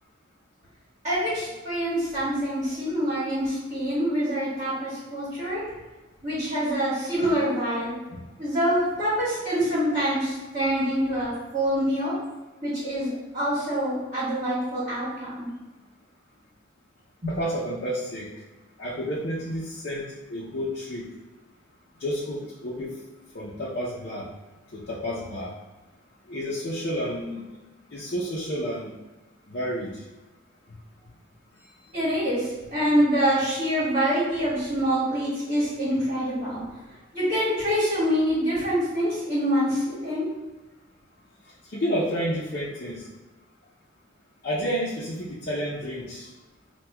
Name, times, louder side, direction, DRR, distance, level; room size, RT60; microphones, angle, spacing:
voice 1, 1.0-5.6 6.2-7.9 8.4-12.1 12.6-15.5 17.2-17.3 31.9-36.6 37.1-40.3, equal, 40° right, -13 dB, 1.4 m, -25 dB
voice 2, 17.3-18.3 18.8-21.1 22.0-23.0 23.3-24.3 24.7-25.5 26.3-27.4 27.9-29.0 29.5-30.0 41.6-43.1 44.4-46.3, equal, 50° left, -7 dB, 0.5 m, -30 dB
5.9 x 2.2 x 2.2 m, 1.1 s
head